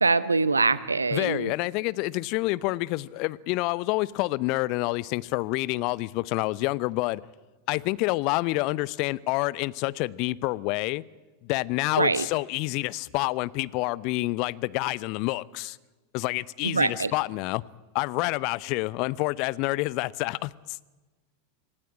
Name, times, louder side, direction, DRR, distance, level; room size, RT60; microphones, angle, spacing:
voice 1, 0.0-1.5 12.0-12.3 16.6-17.1, right 4 dB, 80° right, 1.0 m, -23 dB
voice 2, 1.1-7.2 7.7-11.0 11.4-15.8 16.1-17.6 17.9-20.8, left 21 dB, 45° left, 0.7 m, -28 dB
26.5 x 16.5 x 10.0 m
figure-of-eight pair, 90°, 0 cm